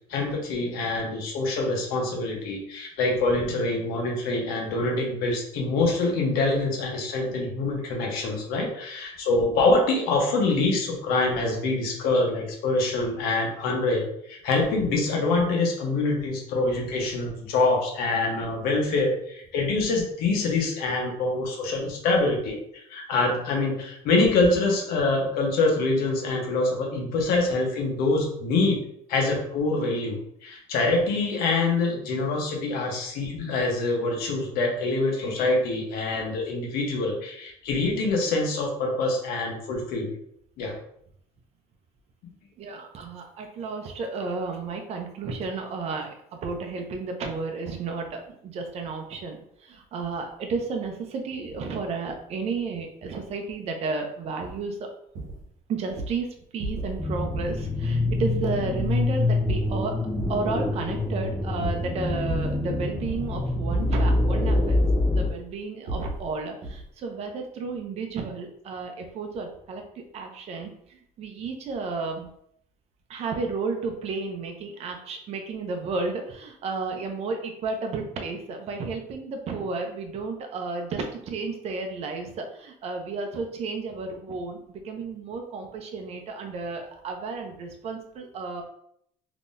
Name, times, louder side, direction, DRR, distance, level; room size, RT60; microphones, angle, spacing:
voice 1, 0.1-28.8 29.1-40.2 40.6-40.7, left 2 dB, 75° left, 1 dB, 1.0 m, -25 dB
voice 2, 42.6-46.1 46.4-54.9 55.7-59.9 60.3-64.8 65.1-72.3 73.1-88.6, right 4 dB, 45° right, 3 dB, 0.6 m, -32 dB
sound 1, 54.4-54.6 55.1-55.5 55.9-56.2 56.6-57.0 57.3-57.6 58.0-59.1 59.4-60.4 60.8-61.1 61.6-62.6 63.0-63.4 63.7-64.7 65.2-65.5 65.9-66.3 66.6-66.9, right 2 dB, 65° right, 0.9 m, -35 dB
sound 2, 57.0-65.3, left 2 dB, 10° left, 0.3 m, -25 dB
3.7 x 2.9 x 2.6 m, 0.70 s
cardioid pair, 145°, 16 cm